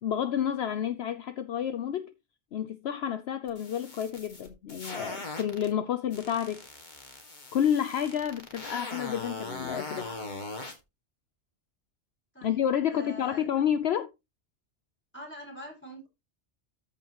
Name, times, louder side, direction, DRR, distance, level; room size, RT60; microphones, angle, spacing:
voice 1, 0.0-2.1 2.5-6.6 7.5-10.2 12.4-14.1, left 9 dB, 65° left, 0.9 m, -30 dB
sound 1, 3.5-5.7 6.1-10.8, left 2 dB, 40° left, 2.1 m, -40 dB
voice 2, 12.9-13.5 15.1-16.1, equal, 10° left, 5.3 m, -44 dB
14.0 x 5.4 x 3.0 m
omnidirectional pair, 1.2 m